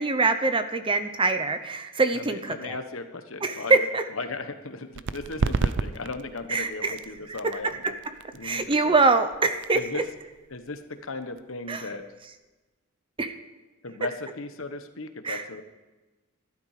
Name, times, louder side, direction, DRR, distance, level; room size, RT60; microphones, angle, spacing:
voice 1, 0.0-2.8 3.4-4.0 6.5-7.0 7.3-7.4 7.6-7.9 8.4-10.0 11.7-11.8 13.2-13.4 15.2-15.4, right 3 dB, 25° right, 9 dB, 0.8 m, -24 dB
voice 2, 2.1-3.9 4.1-7.9 8.3-8.9 9.7-10.0 10.5-12.0 13.8-15.6, left 3 dB, 65° left, 8 dB, 1.2 m, -36 dB
sound 1, 4.9-12.3, right 4 dB, 55° right, 0.5 m, -33 dB
13.5 x 12.0 x 5.0 m, 1.2 s
head